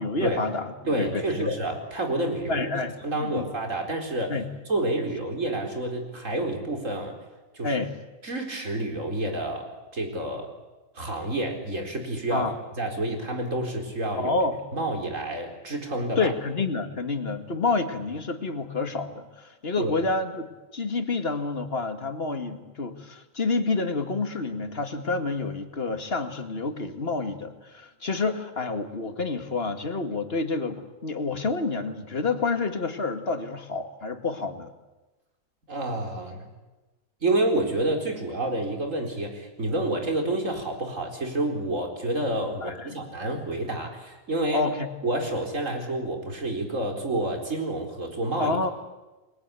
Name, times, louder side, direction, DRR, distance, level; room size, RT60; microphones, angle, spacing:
voice 1, 0.0-1.6 2.5-2.9 3.2-3.5 4.3-4.4 7.6-7.9 12.3-12.5 14.2-14.5 16.2-34.7 39.9-40.0 42.6-42.9 44.5-44.9 48.4-48.7, left 3 dB, 50° left, 7 dB, 2.3 m, -28 dB
voice 2, 0.9-2.7 3.0-4.4 4.7-7.2 7.5-7.7 8.2-10.5 10.9-12.5 12.8-14.4 14.7-16.3 19.8-19.9 35.7-36.5 37.2-44.7 45.0-48.6, right 2 dB, 75° right, 3 dB, 4.8 m, -29 dB
29.5 x 21.0 x 8.4 m, 1.1 s
omnidirectional pair, 1.3 m